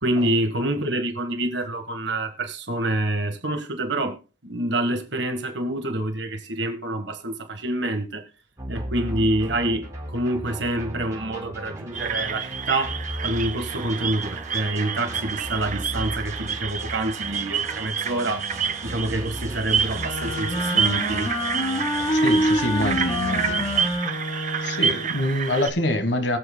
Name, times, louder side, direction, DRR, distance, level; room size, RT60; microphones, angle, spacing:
voice 1, 0.0-8.2 8.7-9.8 10.1-18.5 18.8-21.3, right 1 dB, 65° right, 1.4 m, -27 dB
sound 1, 8.6-24.0, right 1 dB, 15° right, 4.4 m, -36 dB
sound 2, 11.9-25.7, right 7 dB, 40° right, 0.7 m, -29 dB
Wind instrument woodwind instrument, 20.0-25.3, left 1 dB, 35° left, 2.7 m, -26 dB
voice 2, 22.1-23.6 24.6-26.4, left 1 dB, 65° left, 1.3 m, -25 dB
21.5 x 7.6 x 2.2 m
head